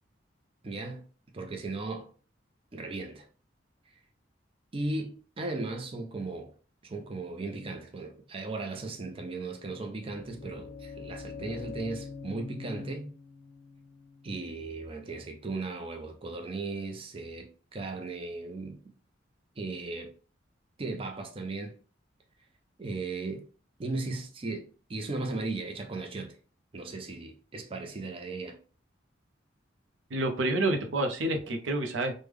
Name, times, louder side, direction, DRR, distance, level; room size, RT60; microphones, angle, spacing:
voice 1, 0.6-1.0 1.3-2.1 2.7-3.3 4.7-6.5 6.8-13.1 14.2-18.8 19.6-20.1 20.8-21.7 22.8-23.5 23.8-26.3 26.7-28.6, right 3 dB, 30° right, 0.4 m, -36 dB
sound 1, 9.9-15.7, left 5 dB, 45° left, 0.8 m, -44 dB
voice 2, 30.1-32.2, right 2 dB, 85° right, 0.6 m, -28 dB
3.3 x 2.1 x 3.4 m
head